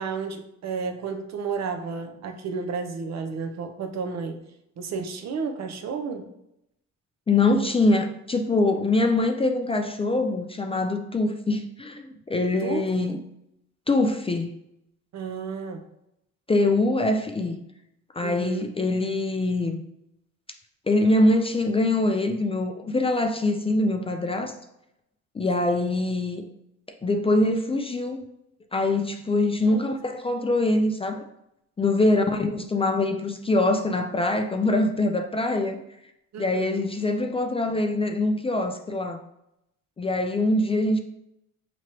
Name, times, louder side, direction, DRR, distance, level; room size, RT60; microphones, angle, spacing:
voice 1, 0.0-4.4 4.8-6.3 12.6-13.1 15.1-15.8 18.2-18.7 25.7-25.9 29.6-29.9 35.7-35.8 36.3-36.8, right 5 dB, 60° right, 0.6 m, -32 dB
voice 2, 7.3-13.2 13.9-14.5 16.5-17.6 18.1-19.8 20.9-24.5 25.3-26.5 27.0-28.2 28.7-31.2 31.8-35.8 36.4-39.2 40.0-41.0, left 2 dB, 20° left, 0.3 m, -23 dB
4.6 x 3.0 x 2.9 m
cardioid pair, 90°, 30 cm